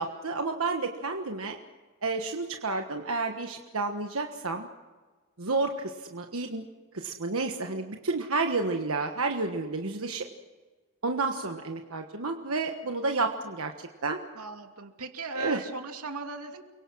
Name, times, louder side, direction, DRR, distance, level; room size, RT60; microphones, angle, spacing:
voice 1, 0.0-1.6 2.0-4.7 5.4-6.6 6.9-10.2 11.0-13.7 14.0-14.2 15.4-15.6, right 3 dB, 70° right, 4 dB, 1.4 m, -30 dB
voice 2, 14.3-16.6, right 3 dB, 90° right, 5 dB, 2.6 m, -37 dB
29.5 x 23.5 x 6.3 m, 1.4 s
head